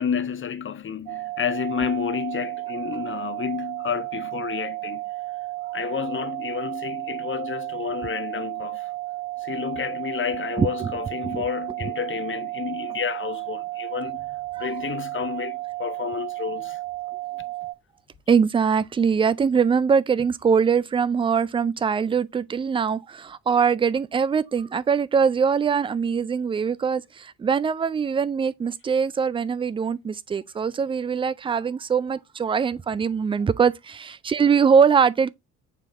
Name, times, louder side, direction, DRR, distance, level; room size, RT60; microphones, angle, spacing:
voice 1, 0.0-5.0 5.7-8.9 9.4-16.8, left 8 dB, 30° left, 0.8 m, -30 dB
sound 1, 1.1-17.7, right 21 dB, 60° right, 0.6 m, -33 dB
voice 2, 10.6-10.9 11.2-11.5 14.5-14.7 18.3-35.3, right 6 dB, 15° right, 0.3 m, -22 dB
7.4 x 3.4 x 3.7 m
figure-of-eight pair, 50°, 43 cm